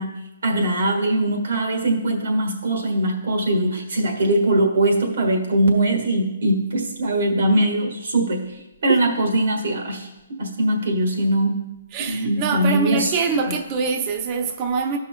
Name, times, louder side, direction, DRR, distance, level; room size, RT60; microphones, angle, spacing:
voice 1, 0.0-8.5 8.8-10.1 10.4-11.6 12.1-13.2 13.4-13.6, right 1 dB, 70° right, 3 dB, 1.5 m, -21 dB
voice 2, 11.9-15.0, right 5 dB, 25° right, 5 dB, 0.6 m, -24 dB
16.0 x 5.6 x 2.2 m, 0.98 s
hypercardioid pair, 165°, 0 cm